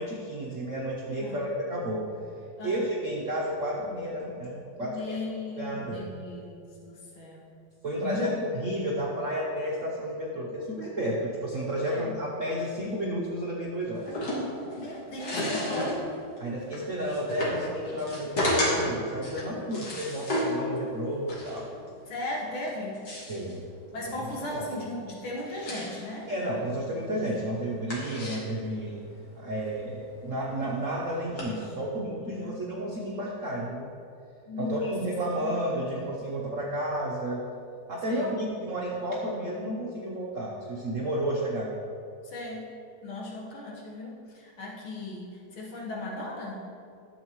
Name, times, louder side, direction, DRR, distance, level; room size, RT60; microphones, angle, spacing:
voice 1, 0.0-2.0 2.6-5.2 5.6-6.1 7.8-14.1 16.4-21.7 23.3-23.6 24.0-24.1 24.5-24.8 26.3-29.1 29.4-33.9 34.6-37.4 37.9-41.7, right 1 dB, 65° right, -3 dB, 0.8 m, -32 dB
voice 2, 4.8-7.5 8.0-8.4 11.8-12.2 14.7-16.1 22.1-23.1 23.9-26.3 32.3-32.6 34.5-34.9 35.4-35.6 38.1-38.4 42.2-42.7 43.0-46.7, left 2 dB, 75° left, -3 dB, 2.2 m, -37 dB
sound 1, 13.9-31.4, left 1 dB, 55° left, 2.2 m, -34 dB
11.5 x 7.1 x 3.0 m, 2.6 s
omnidirectional pair, 2.4 m